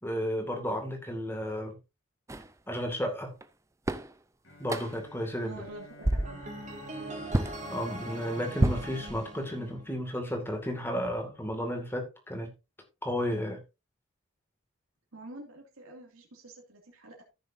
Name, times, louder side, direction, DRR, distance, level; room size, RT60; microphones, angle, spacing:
voice 1, 0.0-1.8 2.7-3.3 4.6-5.6 7.7-12.5 13.0-13.6, equal, 10° left, 2.1 m, -33 dB
sound 1, 2.3-2.5 3.4-3.5 3.9-4.1 4.7-5.1 5.5-5.7 6.0-6.5 7.3-7.6 8.6-9.5, right 1 dB, 15° right, 0.5 m, -29 dB
Bowed string instrument, 4.4-10.3, left 1 dB, 65° left, 2.9 m, -53 dB
voice 2, 5.4-6.4 15.1-17.2, right 1 dB, 90° right, 2.4 m, -47 dB
sound 2, 6.2-10.3, right 1 dB, 35° right, 2.2 m, -42 dB
14.5 x 6.6 x 2.7 m
head